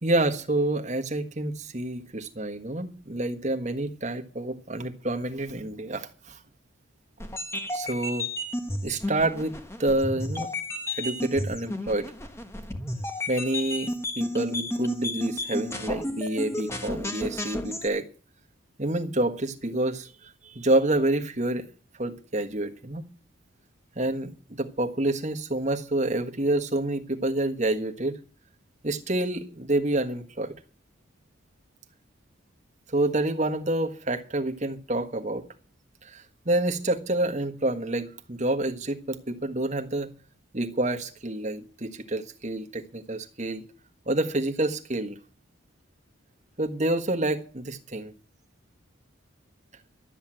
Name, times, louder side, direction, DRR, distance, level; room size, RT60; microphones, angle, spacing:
voice 1, 0.0-6.4 7.7-8.3 8.8-10.5 10.9-12.1 13.3-18.1 18.8-21.7 21.9-23.0 24.0-28.2 28.8-30.5 32.9-35.5 36.0-40.1 40.5-43.6 44.1-45.2 46.6-48.1, right 1 dB, 35° right, 1.4 m, -28 dB
sound 1, 7.2-17.9, left 1 dB, 15° left, 1.3 m, -32 dB
12.5 x 8.1 x 8.9 m
head